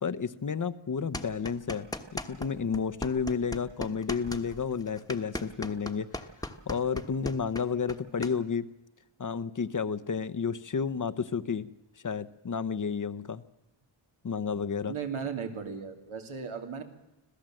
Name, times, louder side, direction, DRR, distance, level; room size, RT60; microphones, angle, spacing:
voice 1, 0.0-1.9 2.1-8.7 9.2-11.7 12.0-13.4 14.2-14.9, left 6 dB, 40° left, 12 dB, 0.8 m, -31 dB
sound 1, 1.1-2.5 2.7-8.3, left 1 dB, 10° left, 1.2 m, -37 dB
voice 2, 14.8-16.8, right 6 dB, 90° right, 4 dB, 3.0 m, -36 dB
26.0 x 16.5 x 7.7 m, 0.95 s
wide cardioid pair, 150°, 48 cm